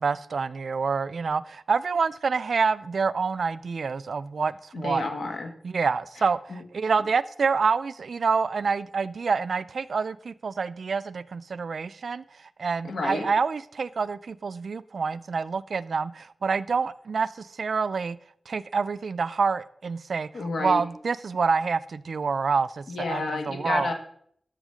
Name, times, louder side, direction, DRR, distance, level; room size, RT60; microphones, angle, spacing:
voice 1, 0.0-5.1 5.6-6.4 6.7-12.2 12.6-18.2 18.5-20.3 20.6-23.9, right 5 dB, 75° right, 16 dB, 0.4 m, -27 dB
voice 2, 4.7-5.5 6.5-6.6 12.8-13.2 20.3-20.8 22.9-23.9, left 3 dB, 85° left, 4 dB, 1.8 m, -30 dB
12.5 x 6.3 x 5.0 m, 0.66 s
wide cardioid pair, 100°, 0 cm